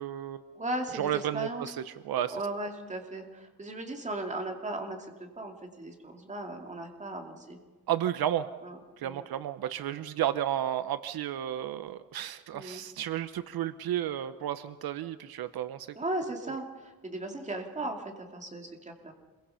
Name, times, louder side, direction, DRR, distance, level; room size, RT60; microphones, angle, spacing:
voice 1, 0.0-0.4 0.9-2.4 7.9-8.5 9.0-15.9, right 11 dB, 75° right, 12 dB, 0.8 m, -32 dB
voice 2, 0.5-1.7 2.3-7.6 8.6-9.3 12.5-12.8 16.0-19.1, right 2 dB, 20° right, 3 dB, 2.5 m, -37 dB
26.5 x 22.0 x 5.7 m, 1.3 s
wide cardioid pair, 160°, 37 cm